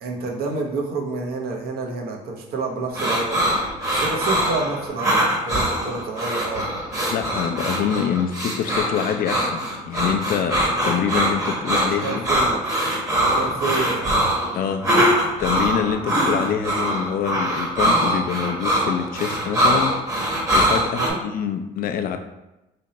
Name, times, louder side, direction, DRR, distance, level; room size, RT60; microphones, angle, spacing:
voice 1, 0.0-3.4 3.9-6.6 12.0-12.6 13.3-14.1 14.9-15.3 20.9-21.2, right 3 dB, 65° right, 1 dB, 0.9 m, -29 dB
sound 1, 2.9-21.1, equal, 20° right, 1.1 m, -22 dB
voice 2, 7.1-12.2 14.5-15.0 15.4-19.9 20.5-22.2, left 8 dB, 60° left, 7 dB, 0.5 m, -25 dB
3.4 x 2.8 x 4.1 m, 0.95 s
cardioid pair, 110°, 17 cm